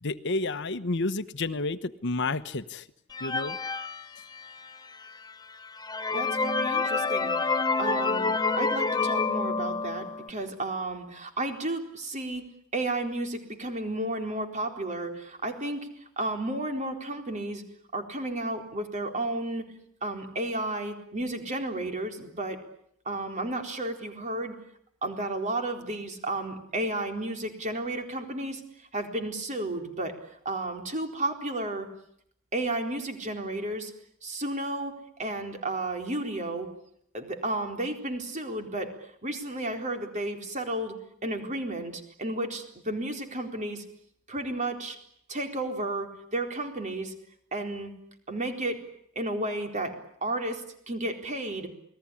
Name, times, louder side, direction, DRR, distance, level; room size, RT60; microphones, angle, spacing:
voice 1, 0.0-2.9 3.2-3.6, left 3 dB, 60° left, 12 dB, 1.1 m, -30 dB
sound 1, 3.1-4.8 5.3-5.4 5.8-10.3, left 4 dB, 20° left, 1.0 m, -28 dB
voice 2, 6.1-12.4 12.7-15.9 16.2-17.6 17.9-19.7 20.0-22.6 23.1-24.6 25.0-28.6 28.9-30.2 30.4-31.9 32.5-33.9 34.2-36.7 37.1-38.9 39.2-41.0 41.2-43.8 44.3-45.0 45.3-47.1 47.5-47.9 48.3-48.8 49.2-49.9 50.2-51.7, right 2 dB, 35° right, 5 dB, 4.2 m, -32 dB
29.0 x 20.0 x 10.0 m, 0.69 s
head